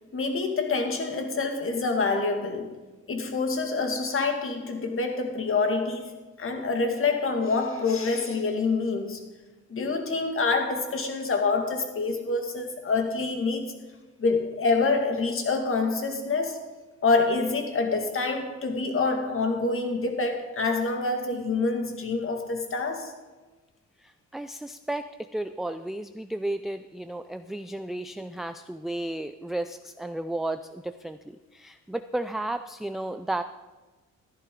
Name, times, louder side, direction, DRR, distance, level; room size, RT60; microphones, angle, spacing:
voice 1, 0.1-2.8 3.1-9.2 9.7-13.6 14.2-16.6 17.0-23.1, left 3 dB, 45° left, 4 dB, 2.1 m, -26 dB
voice 2, 24.0-33.4, right 1 dB, ahead, 9 dB, 0.3 m, -33 dB
13.5 x 11.5 x 3.8 m, 1.2 s
cardioid pair, 90°, 30 cm